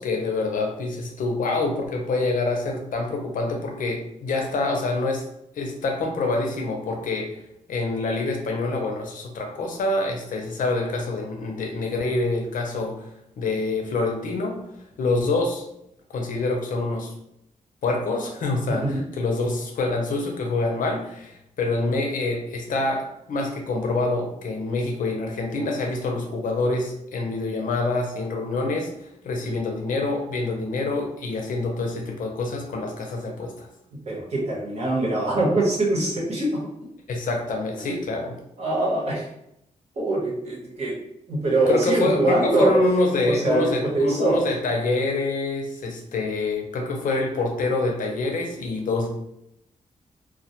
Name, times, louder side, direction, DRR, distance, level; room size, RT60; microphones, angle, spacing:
voice 1, 0.0-5.2 5.5-7.3 7.7-13.1 13.4-14.6 15.0-15.6 16.1-17.1 17.8-28.9 29.2-33.7 37.1-38.3 41.7-49.1, left 2 dB, 75° left, 1 dB, 0.6 m, -26 dB
voice 2, 18.7-19.0 34.1-36.7 37.9-38.0 38.6-39.3 40.0-41.0 41.3-42.8 43.2-44.4, right 2 dB, 50° right, -4 dB, 0.9 m, -23 dB
2.2 x 2.1 x 2.8 m, 0.79 s
wide cardioid pair, 105°, 14 cm